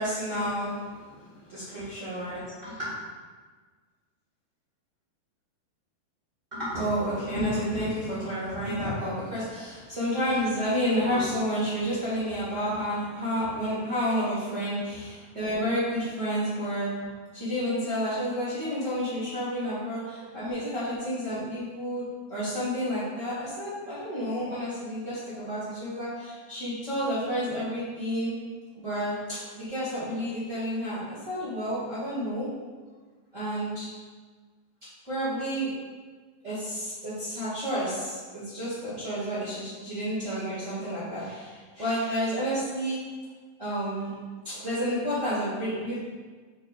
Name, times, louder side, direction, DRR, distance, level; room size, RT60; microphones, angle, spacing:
voice 1, 0.0-2.9 6.5-16.9 17.3-22.0 22.3-28.3 28.7-32.5 33.3-33.9 35.0-35.7 36.4-43.0 43.6-44.2 44.4-46.0, equal, 40° right, -11 dB, 1.1 m, -30 dB
6.6 x 6.0 x 2.4 m, 1.5 s
omnidirectional pair, 4.3 m